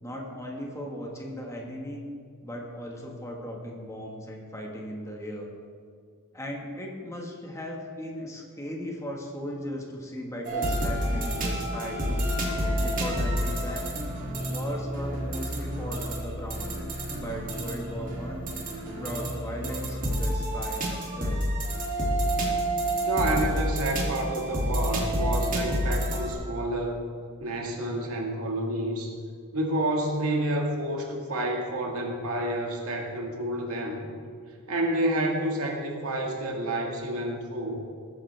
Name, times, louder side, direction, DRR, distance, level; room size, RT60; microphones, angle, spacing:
voice 1, 0.0-2.0 2.4-5.5 6.3-12.4 12.8-13.9 14.4-16.7 17.1-18.5 18.9-21.5, equal, 15° left, -1 dB, 1.7 m, -37 dB
sound 1, 10.4-26.3, equal, 40° right, 2.6 m, -29 dB
voice 2, 23.0-27.0 27.4-29.2 29.5-34.1 34.7-37.8, right 1 dB, 70° right, 1 dB, 1.9 m, -29 dB
19.0 x 10.0 x 3.5 m, 2.2 s
head